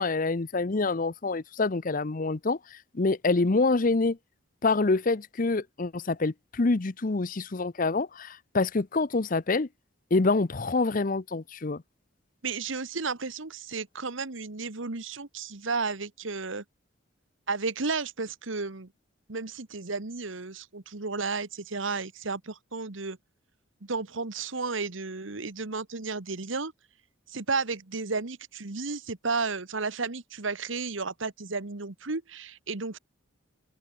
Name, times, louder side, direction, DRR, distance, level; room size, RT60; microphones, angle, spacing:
voice 1, 0.0-4.2 4.6-9.7 10.1-11.8, left 3 dB, 45° left, 0.7 m, -26 dB
voice 2, 12.4-16.6 17.5-18.9 19.3-23.2 23.8-26.7 27.3-33.0, right 4 dB, 80° right, 1.5 m, -33 dB
open air
head